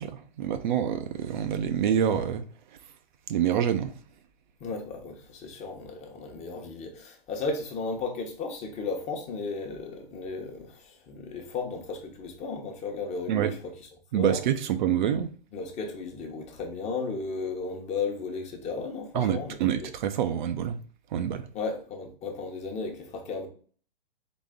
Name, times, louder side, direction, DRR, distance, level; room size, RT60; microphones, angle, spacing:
voice 1, 0.0-2.4 3.3-3.9 13.3-13.5 14.1-15.3 19.1-20.8 21.1-21.5, right 9 dB, 55° right, 0.6 m, -26 dB
voice 2, 4.6-13.7 14.1-14.4 15.5-19.9 21.5-23.5, left 4 dB, 25° left, 1.0 m, -35 dB
4.0 x 3.7 x 3.6 m
hypercardioid pair, 130°, 29 cm